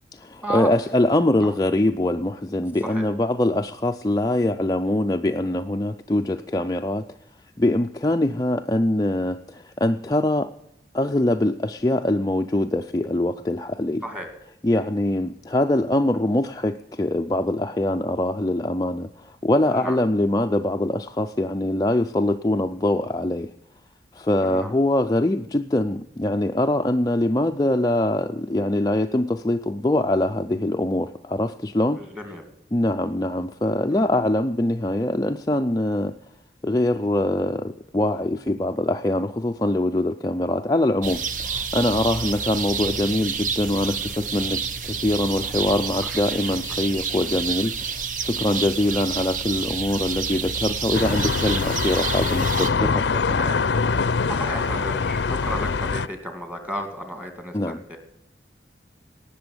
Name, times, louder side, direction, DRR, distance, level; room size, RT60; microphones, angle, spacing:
voice 1, 0.1-7.0 7.6-10.5 10.9-14.0 14.6-23.5 24.1-32.0 32.7-36.1 36.6-53.4 57.5-57.8, left 1 dB, 20° left, 5 dB, 0.4 m, -23 dB
voice 2, 19.7-20.0 24.4-24.7 31.9-32.4 33.9-34.0 46.0-46.1 53.3-54.0 54.3-58.0, equal, 5° right, 5 dB, 2.5 m, -33 dB
sound 1, 41.0-52.7, right 6 dB, 45° right, 0.9 m, -29 dB
sound 2, 50.9-56.1, left 4 dB, 85° left, 0.5 m, -24 dB
18.5 x 6.9 x 9.5 m, 0.83 s
head